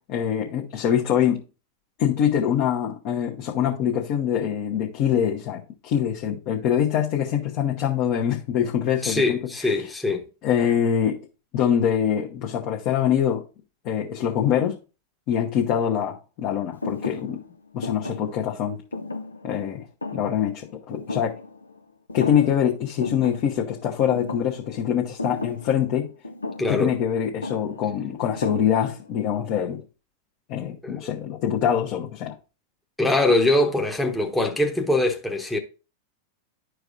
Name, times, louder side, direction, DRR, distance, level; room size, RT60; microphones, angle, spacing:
voice 1, 0.1-1.4 2.0-9.9 10.4-11.2 11.5-13.4 13.8-14.7 15.3-17.4 17.7-18.8 19.4-19.8 20.1-21.3 22.1-26.1 26.7-29.8 30.5-32.3, left 9 dB, 45° left, 1.1 m, -24 dB
voice 2, 9.0-10.3 26.6-26.9 30.8-31.0 33.0-35.6, left 2 dB, 5° left, 1.0 m, -22 dB
Thump thud, 16.8-21.8 22.1-22.7 23.0-29.1, left 3 dB, 90° left, 0.5 m, -36 dB
11.5 x 4.7 x 2.5 m
figure-of-eight pair, 95°, 0 cm